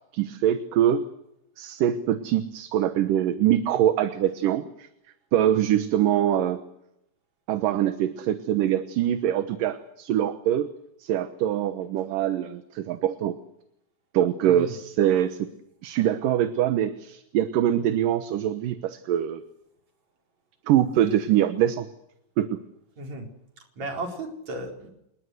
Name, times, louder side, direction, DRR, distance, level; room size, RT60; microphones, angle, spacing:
voice 1, 0.1-1.0 1.6-4.9 5.3-6.6 7.5-10.7 11.0-13.4 14.1-15.5 15.8-19.4 20.7-21.9 22.4-22.6, right 11 dB, 80° right, 11 dB, 2.8 m, -24 dB
voice 2, 5.5-5.8 14.5-14.7 23.0-23.3 23.6-24.9, right 1 dB, 55° right, 3 dB, 5.7 m, -35 dB
27.0 x 21.0 x 7.9 m, 0.80 s
omnidirectional pair, 3.9 m